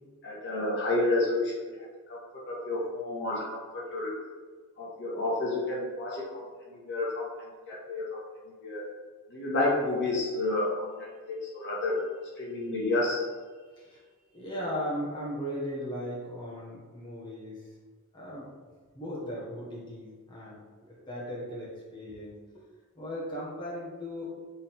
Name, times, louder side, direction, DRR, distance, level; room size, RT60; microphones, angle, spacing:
voice 1, 0.2-1.5 2.1-4.1 4.8-6.5 6.9-7.3 7.7-8.2 8.6-8.9 9.3-12.0 12.4-13.2, left 2 dB, 55° left, -5 dB, 1.7 m, -30 dB
voice 2, 14.3-17.6 18.1-18.5 18.9-22.3 23.0-24.3, equal, 20° left, -7 dB, 1.5 m, -37 dB
7.3 x 3.8 x 3.7 m, 1.5 s
head